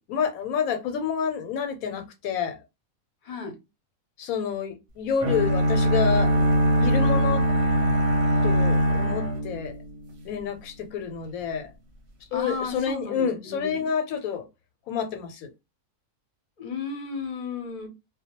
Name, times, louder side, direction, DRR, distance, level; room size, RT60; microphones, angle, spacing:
voice 1, 0.0-2.6 4.2-6.5 6.8-7.5 8.4-9.8 10.2-11.7 12.3-14.5 14.9-15.5, left 7 dB, 80° left, 1.0 m, -28 dB
voice 2, 3.2-3.5 12.3-13.9 16.6-17.9, left 5 dB, 45° left, 0.7 m, -34 dB
sound 1, 5.2-10.2, right 1 dB, 60° right, 0.8 m, -22 dB
2.3 x 2.1 x 2.8 m
omnidirectional pair, 1.5 m